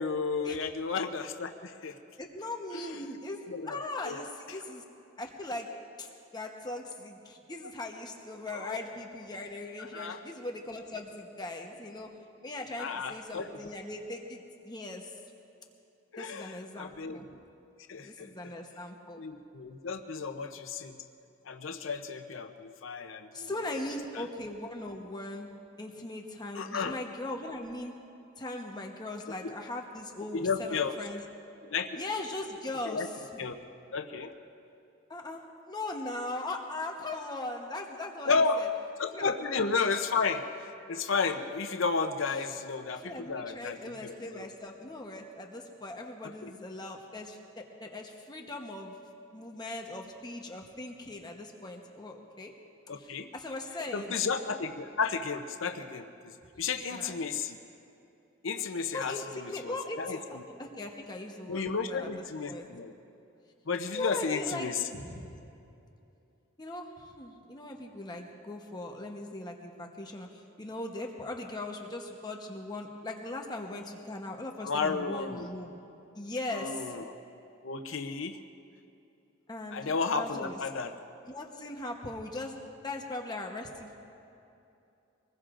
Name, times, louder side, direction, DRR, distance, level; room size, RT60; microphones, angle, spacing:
voice 1, 0.0-2.0 2.7-2.9 3.5-4.2 8.5-8.8 9.8-10.2 12.8-13.5 16.1-17.4 17.9-18.3 19.2-21.0 21.5-23.5 24.1-24.2 26.5-27.0 29.4-29.5 30.3-31.0 31.6-32.0 32.9-33.1 33.4-33.6 33.9-34.3 38.3-38.7 39.0-44.5 46.4-46.5 52.9-53.3 53.9-57.6 58.4-60.4 61.5-62.9 63.7-64.8 74.6-75.5 76.5-77.1 77.6-78.4 79.7-81.0, left 4 dB, 75° left, 7 dB, 0.7 m, -33 dB
voice 2, 2.2-4.8 5.2-5.7 6.0-12.1 12.4-15.1 16.2-17.3 18.0-19.2 23.3-25.5 25.8-27.9 28.4-31.2 32.0-33.5 35.1-38.7 39.1-39.3 42.9-48.9 49.3-52.5 53.0-54.1 56.9-57.2 58.9-62.1 62.5-62.7 63.9-64.7 64.9-65.3 66.6-75.8 76.1-76.9 79.5-80.6 81.3-82.6 82.8-84.0, left 2 dB, 20° left, 1 dB, 1.0 m, -39 dB
25.0 x 20.0 x 2.5 m, 2.7 s
head